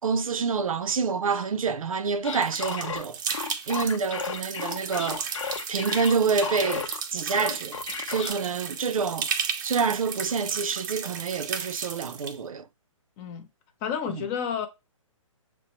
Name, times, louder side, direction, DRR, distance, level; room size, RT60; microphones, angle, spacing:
voice 1, 0.0-3.2 3.7-9.3 9.6-12.7 14.1-14.2, right 5 dB, 85° right, 0.5 m, -27 dB
sound 1, 2.2-7.0 7.3-8.3, left 6 dB, 65° left, 0.7 m, -33 dB
sound 2, 2.4-12.3, right 7 dB, 35° right, 0.5 m, -34 dB
voice 2, 13.2-13.5 13.8-14.7, left 7 dB, 20° left, 0.4 m, -30 dB
5.9 x 2.1 x 2.8 m
hypercardioid pair, 150°, 17 cm